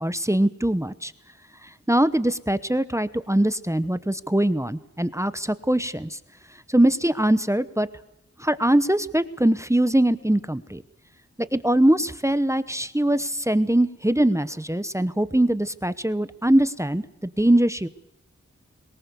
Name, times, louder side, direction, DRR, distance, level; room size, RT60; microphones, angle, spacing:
voice 1, 0.0-1.1 1.6-6.2 6.7-7.9 8.4-10.8 11.5-17.9, right 1 dB, 10° right, 13 dB, 0.9 m, -22 dB
22.5 x 19.5 x 6.8 m, 0.88 s
wide cardioid pair, 70°, 29 cm